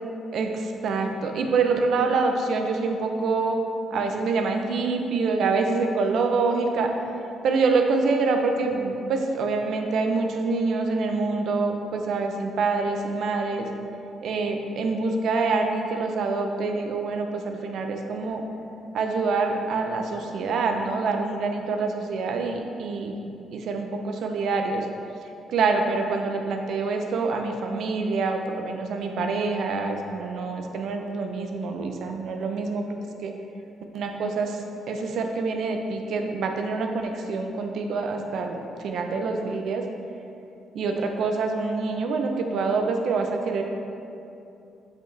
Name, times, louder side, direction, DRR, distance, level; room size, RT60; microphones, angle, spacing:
voice 1, 0.3-3.6 3.9-6.9 7.4-13.7 14.2-18.4 18.9-23.2 23.5-24.9 25.5-33.0 33.2-33.3 33.9-39.8 40.7-43.6, right 4 dB, 70° right, 4 dB, 0.6 m, -26 dB
7.0 x 5.2 x 3.2 m, 2.7 s
cardioid pair, 90°, 0 cm